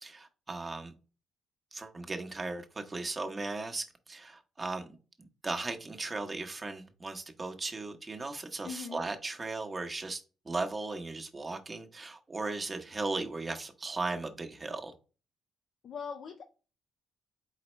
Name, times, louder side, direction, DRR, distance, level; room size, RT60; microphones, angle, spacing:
voice 1, 0.0-0.9 1.7-4.9 5.2-14.9, right 3 dB, 25° right, 1.0 m, -37 dB
voice 2, 8.6-9.0 15.8-16.6, left 6 dB, 60° left, 0.6 m, -41 dB
4.2 x 4.1 x 3.1 m
cardioid pair, 90°, 0 cm